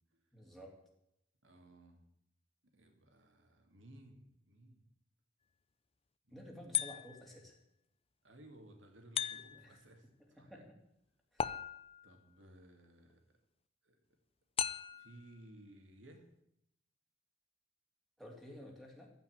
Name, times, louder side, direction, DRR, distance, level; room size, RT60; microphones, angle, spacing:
voice 1, 0.3-0.8 6.3-7.6 9.5-9.7 10.4-10.8 11.3-11.5 18.2-19.1, equal, ahead, -1 dB, 3.1 m, -52 dB
voice 2, 1.4-2.0 2.7-4.8 6.2-6.8 8.2-10.7 12.0-13.4 13.8-14.0 14.9-16.3, right 1 dB, 70° right, 4 dB, 2.6 m, -59 dB
sound 1, 6.7-7.4 9.2-9.8 11.4-12.1 14.6-15.2, left 8 dB, 30° left, 0.5 m, -37 dB
14.5 x 5.9 x 10.0 m, 0.78 s
head